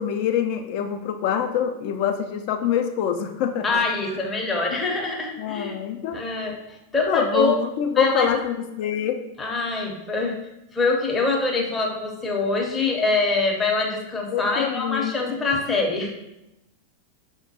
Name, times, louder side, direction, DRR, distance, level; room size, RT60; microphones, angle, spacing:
voice 1, 0.0-3.8 5.4-6.2 7.1-9.2 14.3-15.3, left 8 dB, 45° left, 6 dB, 0.4 m, -25 dB
voice 2, 3.6-5.8 6.1-6.5 6.9-7.6 8.0-8.3 9.4-10.3 10.7-16.1, left 3 dB, 15° left, -1 dB, 0.7 m, -24 dB
5.6 x 2.1 x 2.7 m, 0.90 s
figure-of-eight pair, 90°, 0 cm